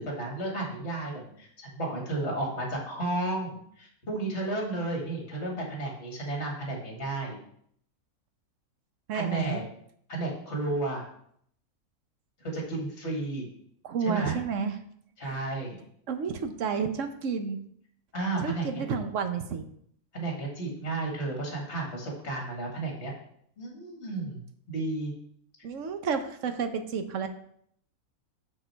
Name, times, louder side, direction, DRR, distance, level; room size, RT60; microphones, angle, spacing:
voice 1, 0.0-7.4 9.1-9.6 10.1-11.0 12.4-13.5 14.0-14.3 15.2-15.8 18.1-18.8 20.1-23.1 23.6-25.1, right 2 dB, 45° left, 0 dB, 2.2 m, -33 dB
voice 2, 9.1-9.6 13.8-14.8 15.2-15.5 16.1-17.6 18.4-19.6 25.6-27.3, right 6 dB, 60° right, 7 dB, 1.0 m, -31 dB
6.5 x 6.0 x 4.5 m, 0.67 s
omnidirectional pair, 1.6 m